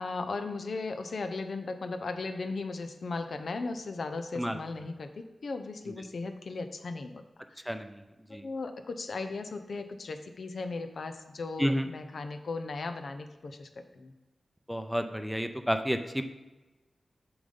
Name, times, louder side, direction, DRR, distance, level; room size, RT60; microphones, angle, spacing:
voice 1, 0.0-7.2 8.3-14.1, left 3 dB, 75° left, 7 dB, 0.6 m, -37 dB
voice 2, 14.7-16.2, equal, ahead, 8 dB, 0.6 m, -30 dB
7.1 x 3.9 x 5.3 m, 1.1 s
cardioid pair, 50°, 0 cm